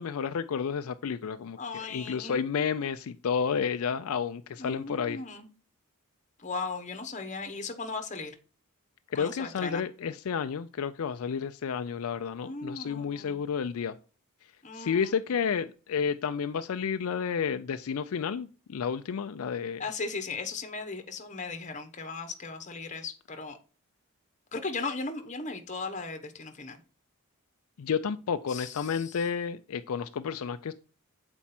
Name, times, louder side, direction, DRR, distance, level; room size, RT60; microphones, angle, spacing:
voice 1, 0.0-5.2 9.1-14.0 14.7-19.8 27.8-30.7, left 6 dB, 70° left, 9 dB, 0.4 m, -31 dB
voice 2, 1.6-2.4 4.6-5.5 6.4-8.3 9.1-9.8 12.4-13.4 14.6-15.1 19.8-23.6 24.5-26.8 28.5-29.2, left 3 dB, 35° left, 7 dB, 1.0 m, -37 dB
7.3 x 4.4 x 4.2 m, 0.36 s
head